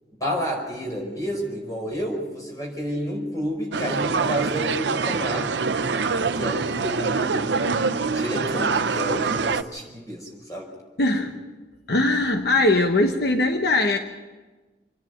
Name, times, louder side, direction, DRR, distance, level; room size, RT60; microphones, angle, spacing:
voice 1, 0.2-5.6 6.3-7.6 8.1-10.7, equal, 20° left, 0 dB, 4.9 m, -30 dB
sound 1, 3.7-9.6, right 4 dB, 85° right, 0.7 m, -24 dB
voice 2, 11.0-11.3 11.9-14.0, left 2 dB, 65° left, 4 dB, 1.1 m, -20 dB
27.5 x 10.5 x 9.2 m, 1.3 s
head